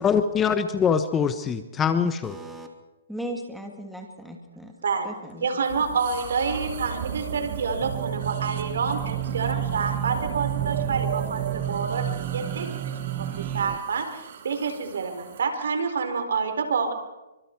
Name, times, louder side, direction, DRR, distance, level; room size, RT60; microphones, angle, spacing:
voice 1, 0.0-2.4, left 6 dB, 15° left, 10 dB, 1.1 m, -23 dB
voice 2, 2.2-2.7 3.1-4.7 5.0-5.5 5.7-5.8, right 1 dB, ahead, 1 dB, 2.9 m, -37 dB
voice 3, 5.4-16.9, right 5 dB, 75° right, 7 dB, 4.4 m, -28 dB
sound 1, 5.6-15.4, right 8 dB, 55° right, 3.2 m, -36 dB
sound 2, 7.8-13.8, right 11 dB, 30° right, 1.2 m, -31 dB
28.5 x 24.5 x 4.7 m, 1.0 s
hypercardioid pair, 150°, 0 cm